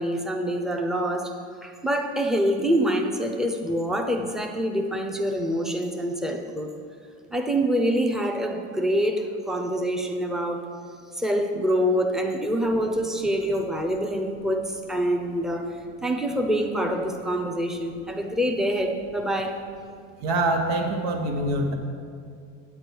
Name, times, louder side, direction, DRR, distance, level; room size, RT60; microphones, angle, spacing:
voice 1, 0.0-1.3 1.6-6.8 7.3-10.7 11.1-19.6, equal, ahead, 3 dB, 0.6 m, -26 dB
voice 2, 20.2-21.8, right 2 dB, 80° right, 3 dB, 1.4 m, -24 dB
8.7 x 8.5 x 4.6 m, 2.3 s
cardioid pair, 120°, 37 cm